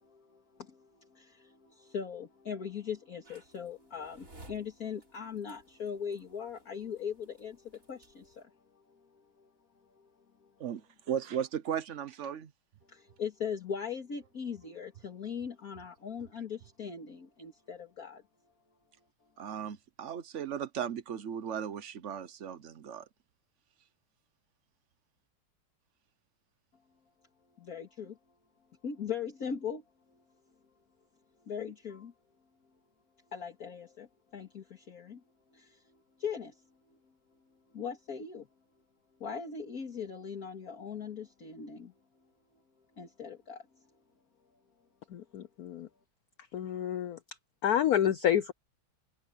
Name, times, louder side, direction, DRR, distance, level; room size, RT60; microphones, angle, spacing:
voice 1, 0.0-9.0 9.4-9.5 9.9-10.1 12.9-18.2 27.6-28.2 28.8-29.8 31.5-32.1 33.3-35.2 35.5-35.8 36.2-36.6 37.7-38.5 39.2-41.9 43.0-43.7, left 7 dB, 45° left, 2.5 m, -40 dB
sound 1, 3.2-8.4, right 2 dB, 35° right, 4.3 m, -58 dB
voice 2, 10.6-12.5 19.4-23.1, right 8 dB, 65° right, 0.7 m, -36 dB
voice 3, 45.1-45.9 46.5-47.2 47.6-48.5, left 10 dB, 85° left, 0.8 m, -29 dB
omnidirectional pair, 2.4 m